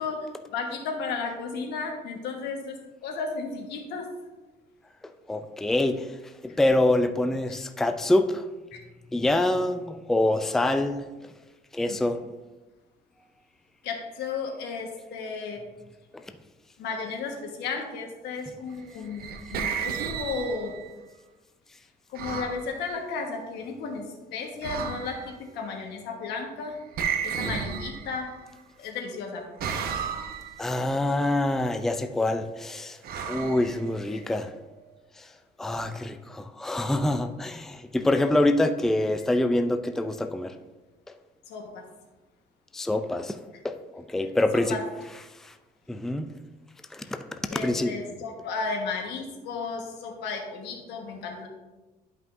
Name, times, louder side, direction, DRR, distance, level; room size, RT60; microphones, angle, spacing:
voice 1, 0.0-4.1 8.7-8.8 11.8-12.0 13.8-15.6 16.8-20.8 22.1-26.8 27.2-28.4 28.8-29.5 34.1-34.2 41.5-41.9 44.5-44.8 47.0-47.1 47.5-51.5, left 4 dB, 85° left, 2 dB, 1.4 m, -34 dB
voice 2, 5.3-6.2 6.4-8.5 9.1-11.1 11.7-12.2 16.1-16.2 30.6-33.0 33.3-34.5 35.2-35.3 35.6-40.6 42.7-43.4 43.6-44.8 45.3-45.5 45.9-46.4 46.9-47.9, left 1 dB, ahead, 8 dB, 0.4 m, -26 dB
sound 1, 18.9-20.9 22.1-22.7 24.6-25.3 26.9-28.4 29.6-30.6 33.0-34.2, right 7 dB, 65° right, 0.8 m, -33 dB
11.5 x 5.4 x 2.6 m, 1.1 s
cardioid pair, 110°, 17 cm